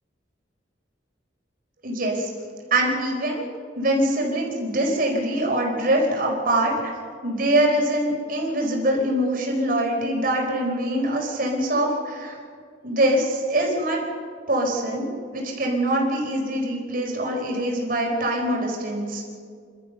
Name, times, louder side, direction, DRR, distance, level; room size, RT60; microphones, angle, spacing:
voice 1, 1.8-2.3 2.7-3.4 3.8-6.7 7.2-12.4 12.8-14.0 14.5-19.2, right 1 dB, 50° right, -1 dB, 4.5 m, -23 dB
30.0 x 13.0 x 6.8 m, 2.1 s
head